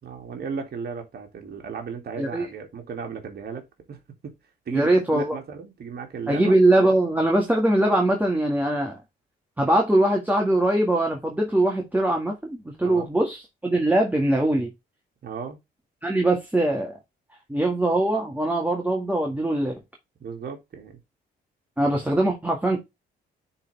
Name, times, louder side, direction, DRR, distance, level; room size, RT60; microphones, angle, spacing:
voice 1, 0.0-3.6 3.9-4.3 4.7-6.5 12.8-13.1 15.2-15.6 20.2-21.0, right 5 dB, 50° right, 2.4 m, -35 dB
voice 2, 4.7-5.4 6.3-9.0 9.6-14.7 16.0-16.9 17.5-19.8 21.8-22.8, right 1 dB, 10° right, 1.8 m, -22 dB
9.7 x 4.1 x 3.3 m
cardioid pair, 90°, 20 cm